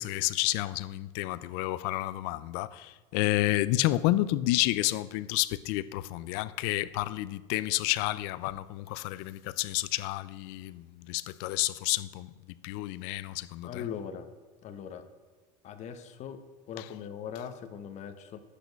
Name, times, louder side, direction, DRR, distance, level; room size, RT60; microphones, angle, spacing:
voice 1, 0.0-12.3 12.6-13.8, left 17 dB, 70° left, 0.5 m, -30 dB
voice 2, 13.6-14.3 14.6-15.0 15.6-16.4 16.7-18.4, left 8 dB, 40° left, 1.1 m, -40 dB
12.0 x 8.4 x 5.3 m
cardioid pair, 140°, 17 cm